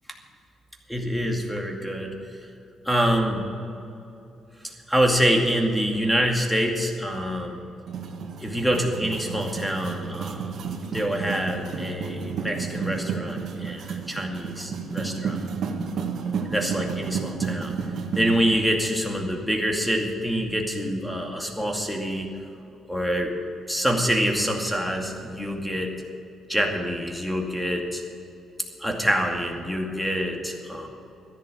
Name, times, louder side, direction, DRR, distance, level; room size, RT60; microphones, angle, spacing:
voice 1, 0.9-2.2 2.8-3.4 4.6-7.6 8.4-10.7 10.9-15.4 16.5-17.7 18.2-22.4 22.9-23.3 23.7-25.9 26.5-28.0 28.8-30.9, equal, ahead, 2 dB, 2.3 m, -26 dB
sound 1, 7.9-18.4, right 5 dB, 65° right, 1.7 m, -31 dB
13.5 x 10.5 x 7.4 m, 2.8 s
cardioid pair, 90°, 0 cm